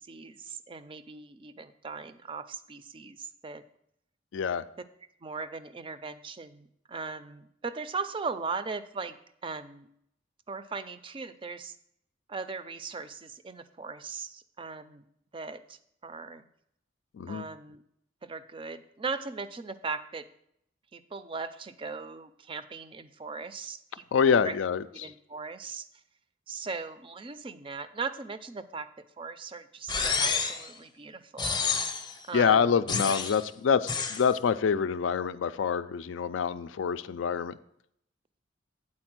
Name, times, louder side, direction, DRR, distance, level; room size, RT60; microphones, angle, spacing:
voice 1, 0.0-3.6 5.2-9.2 9.4-9.9 10.5-11.7 12.3-15.0 15.3-16.4 17.3-17.8 18.2-20.2 20.9-24.6 24.9-25.9 26.5-28.9 29.2-31.8 32.3-32.8, right 4 dB, 25° right, 12 dB, 0.4 m, -39 dB
voice 2, 4.3-4.6 17.2-17.4 24.1-25.1 32.3-37.6, left 6 dB, 75° left, 13 dB, 0.4 m, -26 dB
sound 1, 29.9-30.7 31.4-32.1 32.9-33.4 33.9-34.2, left 5 dB, 25° left, 0.6 m, -29 dB
8.6 x 4.3 x 6.0 m, 0.74 s
head